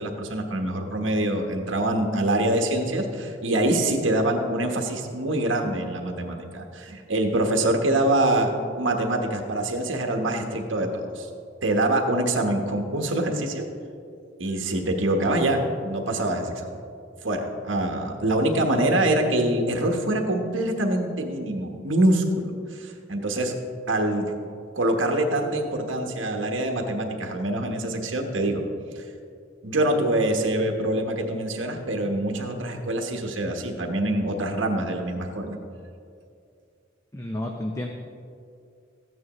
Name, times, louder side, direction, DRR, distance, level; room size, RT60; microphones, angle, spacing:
voice 1, 0.0-8.5 8.8-11.3 11.6-13.6 14.4-16.7 17.2-23.5 23.9-24.3 24.7-28.6 29.0-29.1 29.6-35.6, right 1 dB, 80° right, 3 dB, 1.2 m, -25 dB
voice 2, 37.1-37.9, left 1 dB, 15° left, 2 dB, 0.6 m, -30 dB
14.0 x 9.3 x 3.1 m, 2.4 s
head